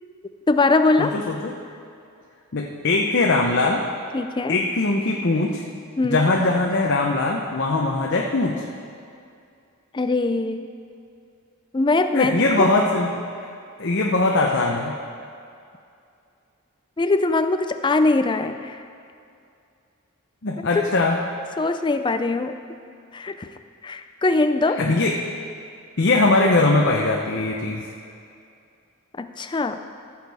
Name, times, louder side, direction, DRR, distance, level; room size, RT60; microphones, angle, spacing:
voice 1, 0.5-1.1 4.1-4.6 6.0-6.2 9.9-10.7 11.7-12.3 12.6-12.7 17.0-18.8 20.6-20.8 21.6-22.6 23.1-23.5 23.8-24.8 29.2-29.8, left 3 dB, 20° left, 9 dB, 0.4 m, -21 dB
voice 2, 1.0-1.5 2.5-3.8 4.5-5.6 6.0-8.6 12.1-13.1 13.8-15.0 20.4-21.2 24.8-25.1 26.0-27.9, left 2 dB, 55° left, 0 dB, 0.8 m, -21 dB
15.0 x 7.3 x 4.8 m, 2.5 s
head